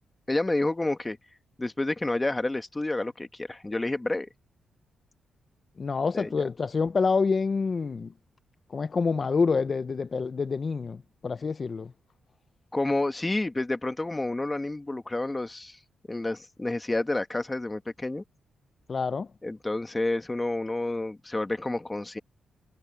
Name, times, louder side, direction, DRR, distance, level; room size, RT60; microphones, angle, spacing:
voice 1, 0.3-1.2 1.6-4.3 6.1-6.3 12.7-15.8 16.1-18.2 19.4-22.2, left 2 dB, 15° left, 1.3 m, -29 dB
voice 2, 5.8-8.1 8.7-11.9 18.9-19.3, left 4 dB, 30° left, 0.5 m, -27 dB
wide cardioid pair, 160°, 0 cm